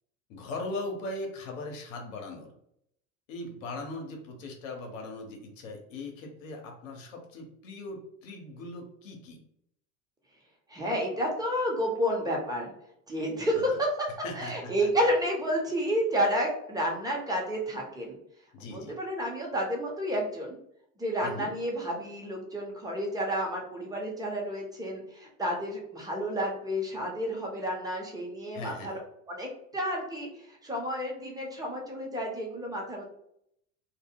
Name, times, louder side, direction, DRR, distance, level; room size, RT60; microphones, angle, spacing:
voice 1, 0.3-2.5 3.3-9.4 13.5-13.6 14.2-14.9 18.5-19.0 21.2-21.5 28.5-29.0, left 2 dB, 75° left, 2 dB, 0.8 m, -39 dB
voice 2, 10.7-12.7 13.1-14.1 14.3-18.2 18.7-20.6 21.0-29.0 29.3-33.1, equal, 10° right, -1 dB, 0.9 m, -30 dB
2.3 x 2.1 x 3.6 m, 0.74 s
hypercardioid pair, 80°, 39 cm